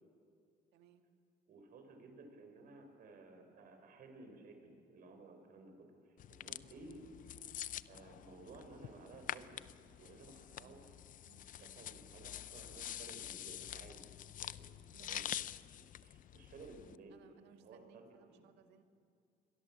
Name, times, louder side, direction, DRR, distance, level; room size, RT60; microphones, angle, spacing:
voice 1, 0.7-1.0 6.6-6.9 10.5-10.8 14.9-15.3 17.1-18.8, right 8 dB, 85° right, 6 dB, 2.0 m, -64 dB
voice 2, 1.5-7.1 7.9-9.6 10.0-14.1 14.4-15.3 16.0-17.2 17.5-18.5, right 3 dB, 60° right, 5 dB, 5.1 m, -56 dB
sound 1, 6.2-17.0, left 11 dB, 55° left, 0.6 m, -47 dB
27.5 x 22.5 x 7.5 m, 2.4 s
cardioid pair, 110°, 17 cm